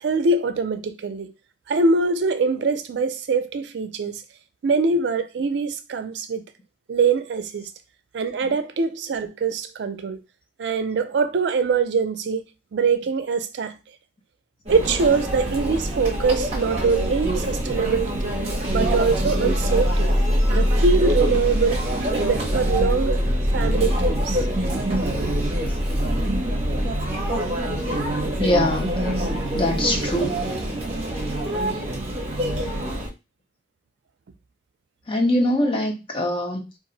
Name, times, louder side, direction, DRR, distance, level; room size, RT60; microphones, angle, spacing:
voice 1, 0.0-1.3 1.7-4.2 4.6-6.5 6.9-7.7 8.1-10.2 10.6-12.4 12.7-13.8 14.7-18.4 18.7-20.1 20.5-23.2 23.5-24.7, right 4 dB, 70° right, 0.4 m, -23 dB
Conversation / Chatter / Crowd, 14.7-33.1, right 1 dB, 35° right, 0.7 m, -26 dB
sound 1, 18.7-31.4, left 1 dB, 70° left, 1.1 m, -26 dB
voice 2, 28.4-29.2 29.5-30.4 35.1-36.7, left 1 dB, 30° left, 0.5 m, -23 dB
2.4 x 2.0 x 3.7 m
head